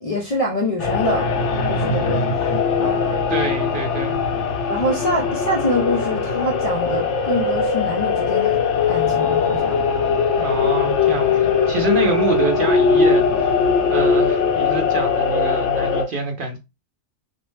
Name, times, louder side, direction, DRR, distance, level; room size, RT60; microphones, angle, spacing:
voice 1, 0.0-1.3 1.7-2.5 2.8-3.2 4.7-8.6 8.9-9.8, left 1 dB, 45° left, 0.5 m, -25 dB
sound 1, 0.8-16.0, left 5 dB, 80° left, 1.0 m, -20 dB
voice 2, 3.3-4.2 10.4-13.6 13.9-16.6, right 3 dB, 55° right, 0.8 m, -26 dB
2.6 x 2.1 x 3.1 m
omnidirectional pair, 1.2 m